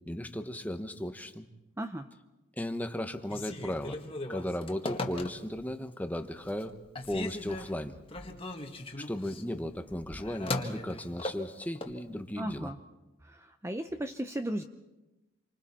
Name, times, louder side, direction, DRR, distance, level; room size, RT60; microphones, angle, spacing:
voice 1, 0.1-1.5 2.6-4.0 4.3-6.8 7.1-8.0 9.0-12.7, left 1 dB, 10° left, 8 dB, 1.0 m, -36 dB
voice 2, 1.8-2.1 12.4-12.8 13.2-14.6, right 1 dB, 15° right, 7 dB, 0.6 m, -35 dB
Telephone, 3.2-5.7 6.2-6.7 7.0-12.0, left 2 dB, 30° left, 1.6 m, -38 dB
28.5 x 24.5 x 4.4 m, 1.0 s
head